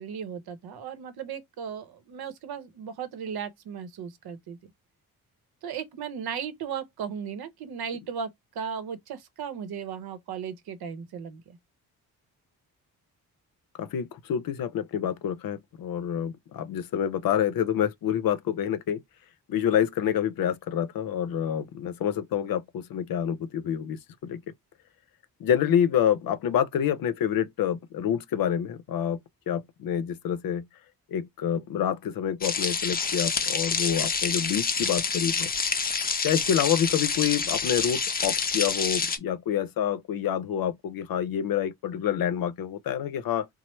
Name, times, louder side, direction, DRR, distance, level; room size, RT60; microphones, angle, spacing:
voice 1, 0.0-4.6 5.6-8.3 8.5-11.6, right 7 dB, 85° right, 0.7 m, -36 dB
voice 2, 13.8-19.0 19.5-24.4 25.4-29.2 29.5-30.7 31.1-35.5 36.2-43.5, left 9 dB, 70° left, 0.6 m, -27 dB
sound 1, 32.4-39.2, left 5 dB, 25° left, 0.5 m, -27 dB
3.1 x 2.0 x 2.9 m
cardioid pair, 85°, 37 cm